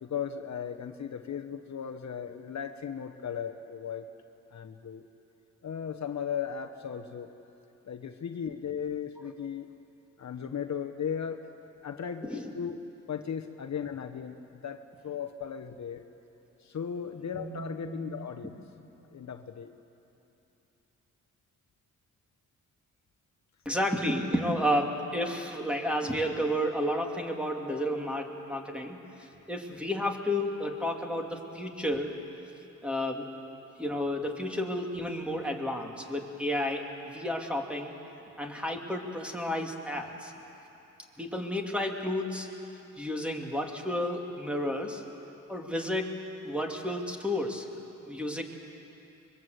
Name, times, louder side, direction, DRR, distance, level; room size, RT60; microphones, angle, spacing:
voice 1, 0.0-4.1 4.5-5.1 5.6-7.3 7.8-9.7 10.2-11.5 11.8-12.8 13.1-16.0 16.6-18.5 19.1-19.7, left 7 dB, 55° left, 5 dB, 1.2 m, -36 dB
voice 2, 17.3-18.1 23.6-32.1 32.8-33.3 33.8-37.9 38.4-40.3 41.2-42.5 43.0-45.0 45.5-46.1 46.4-47.7 48.0-48.4, equal, 5° right, 1 dB, 3.0 m, -31 dB
25.0 x 22.5 x 8.2 m, 2.9 s
cardioid pair, 75°, 32 cm